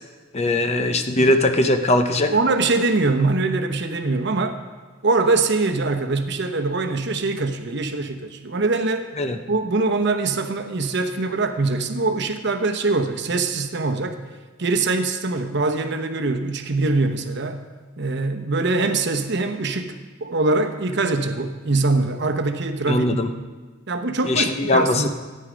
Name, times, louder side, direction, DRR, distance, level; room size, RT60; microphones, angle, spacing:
voice 1, 0.3-2.4 9.2-9.4 22.9-23.3 24.2-25.1, left 1 dB, 30° left, 7 dB, 0.6 m, -20 dB
voice 2, 2.3-4.6 5.0-9.1 9.5-14.2 14.6-17.6 18.0-23.2 23.9-25.1, right 3 dB, 55° right, 7 dB, 0.9 m, -23 dB
13.5 x 9.6 x 5.1 m, 1.4 s
head